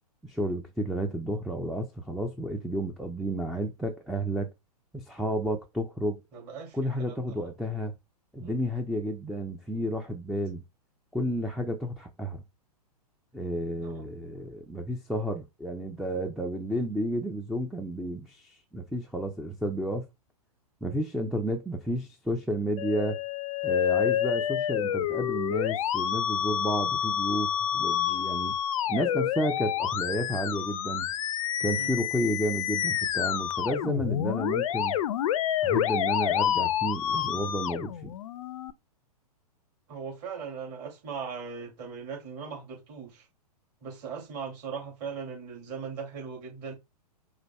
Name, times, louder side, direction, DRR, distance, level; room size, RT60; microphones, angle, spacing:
voice 1, 0.2-4.5 4.9-6.2 6.7-7.9 8.3-10.6 11.1-12.4 13.3-20.1 20.8-23.2 23.6-28.6 28.9-31.1 31.6-35.0 35.6-38.1, right 1 dB, ahead, 0.4 m, -31 dB
voice 2, 6.3-7.5 8.4-8.6 13.8-14.1 31.8-31.9 39.9-43.2 43.8-46.7, right 6 dB, 40° right, 2.5 m, -39 dB
Musical instrument, 22.8-38.7, left 10 dB, 55° left, 0.5 m, -28 dB
4.9 x 2.2 x 4.1 m
figure-of-eight pair, 110°, 20 cm